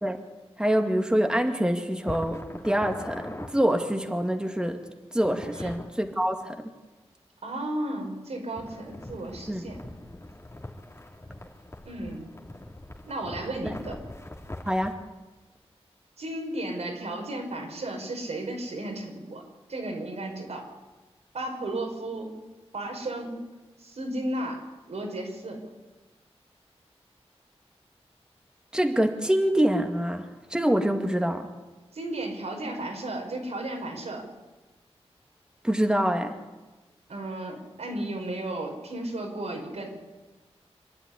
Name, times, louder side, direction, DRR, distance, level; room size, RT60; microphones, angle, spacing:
voice 1, 0.6-4.8 5.1-6.7 9.5-9.7 13.6-13.7 14.7-14.9 28.7-31.5 35.6-36.4, equal, 5° right, 4 dB, 2.1 m, -25 dB
sound 1, 2.0-3.5 5.2-5.9 8.6-14.9, left 1 dB, 25° left, 2.8 m, -41 dB
voice 2, 7.4-9.8 11.8-12.3 13.1-14.0 16.2-19.4 19.7-20.7 21.3-22.3 22.7-23.4 23.8-24.6 24.9-25.6 31.9-34.3 37.1-39.9, right 1 dB, 85° right, 1 dB, 5.3 m, -34 dB
26.0 x 11.0 x 10.0 m, 1.2 s
wide cardioid pair, 70°, 11 cm